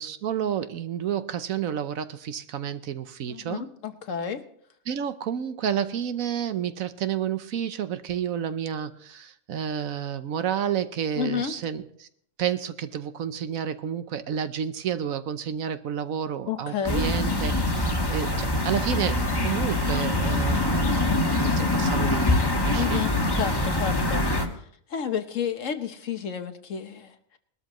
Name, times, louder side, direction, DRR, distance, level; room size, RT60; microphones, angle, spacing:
voice 1, 0.0-3.6 4.9-12.1 12.4-21.0 21.4-22.4 22.6-23.0, right 9 dB, 75° right, 11 dB, 1.2 m, -30 dB
voice 2, 3.3-4.4 11.2-11.5 16.5-17.0 22.8-24.3 24.9-27.4, left 8 dB, 65° left, 8 dB, 1.3 m, -31 dB
sound 1, 16.9-24.5, left 2 dB, 20° left, 1.2 m, -24 dB
20.5 x 13.0 x 3.0 m, 0.66 s
omnidirectional pair, 1.5 m